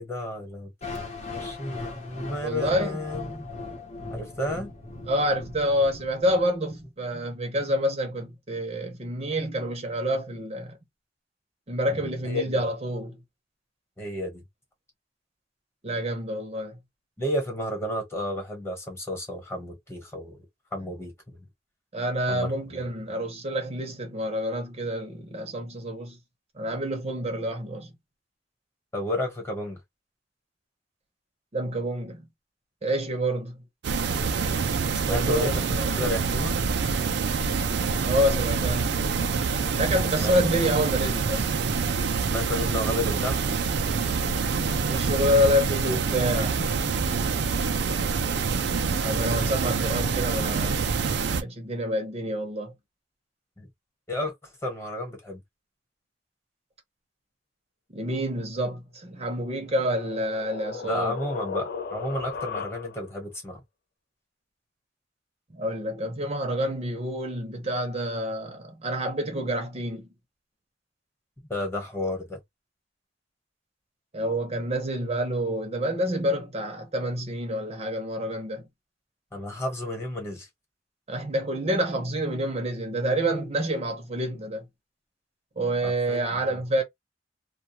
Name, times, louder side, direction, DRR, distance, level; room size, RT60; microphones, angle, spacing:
voice 1, 0.0-3.4 4.1-4.7 7.1-7.3 11.9-12.6 14.0-14.4 17.2-20.4 20.7-21.4 22.3-22.8 28.9-29.8 35.1-36.6 40.2-40.3 42.3-43.4 47.6-48.0 53.6-53.7 54.1-55.4 60.8-63.6 71.5-72.4 79.3-80.5 85.8-86.2, left 1 dB, 15° left, 1.2 m, -32 dB
sound 1, 0.8-6.8, left 3 dB, 40° left, 0.9 m, -38 dB
voice 2, 2.4-3.0 5.1-10.8 11.7-13.2 15.8-16.8 21.9-26.2 26.5-27.9 31.5-32.3 32.8-33.6 35.1-35.9 38.1-38.9 39.8-41.5 44.9-46.7 48.9-50.9 51.4-52.7 57.9-61.2 65.5-70.1 74.1-78.7 81.1-84.7 85.6-86.8, equal, 35° right, 0.7 m, -28 dB
sound 2, 33.8-51.4, right 5 dB, 65° right, 0.4 m, -26 dB
sound 3, 59.4-63.2, left 6 dB, 60° left, 0.4 m, -36 dB
2.3 x 2.3 x 2.8 m
head